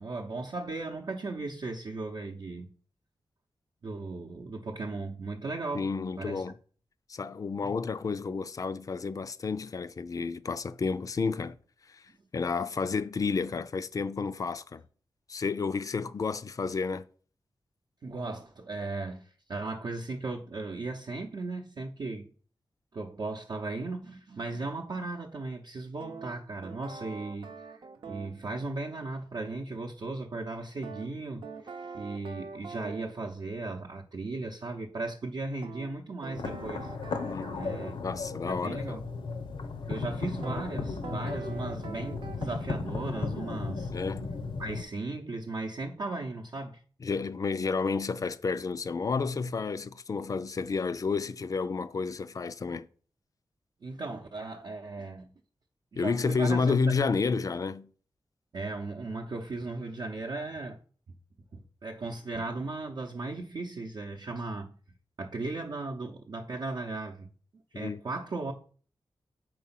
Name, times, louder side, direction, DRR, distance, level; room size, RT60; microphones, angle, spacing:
voice 1, 0.0-2.7 3.8-5.9 6.2-6.4 18.0-22.3 22.9-36.9 37.5-37.9 38.4-39.0 39.9-43.9 44.6-46.8 53.8-55.3 55.9-56.8 58.5-60.8 61.5-64.8 65.2-67.3 67.7-68.5, right 3 dB, 60° right, 0.7 m, -37 dB
voice 2, 5.7-6.6 7.1-11.6 11.9-12.0 12.3-14.8 15.3-17.1 37.2-39.0 43.9-44.3 47.0-52.9 56.0-57.9 67.7-68.0, left 4 dB, 45° left, 0.4 m, -31 dB
sound 1, 26.0-28.4 30.8-33.2 35.6-38.0 40.4-40.7 41.0-42.4, right 4 dB, 85° right, 0.8 m, -43 dB
sound 2, 36.3-44.8, left 4 dB, 85° left, 0.7 m, -35 dB
4.8 x 4.3 x 5.7 m
wide cardioid pair, 140°, 8 cm